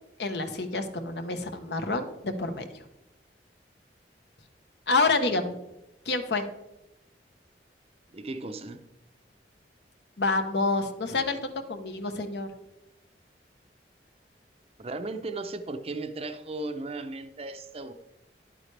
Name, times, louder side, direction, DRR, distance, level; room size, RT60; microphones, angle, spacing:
voice 1, 0.2-2.8 4.9-5.5 6.0-6.4 10.2-12.5, left 3 dB, 70° left, 1.1 m, -28 dB
voice 2, 8.1-8.8 14.8-17.9, right 2 dB, 35° right, 0.6 m, -36 dB
11.0 x 8.9 x 3.3 m
head